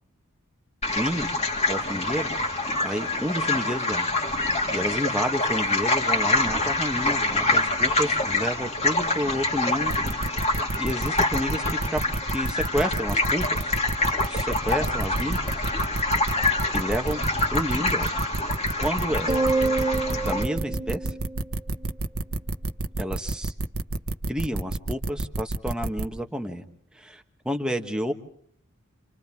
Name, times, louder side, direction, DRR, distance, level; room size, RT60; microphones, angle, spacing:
sound 1, 0.8-20.4, left 2 dB, 30° left, 2.3 m, -26 dB
voice 1, 0.9-1.3 1.6-2.3 2.8-4.1 4.7-9.9 10.8-11.6 11.9-12.0 12.3-13.8 14.3-15.4 16.7-17.2 17.5-18.1 18.8-19.3 20.2-21.1 23.0-23.5 24.3-26.6 26.9-28.1, equal, 5° right, 4 dB, 1.4 m, -30 dB
sound 2, 9.9-26.0, right 2 dB, 80° right, 1.3 m, -29 dB
sound 3, 19.3-21.9, right 3 dB, 25° right, 1.6 m, -27 dB
30.0 x 26.5 x 3.6 m, 0.63 s
head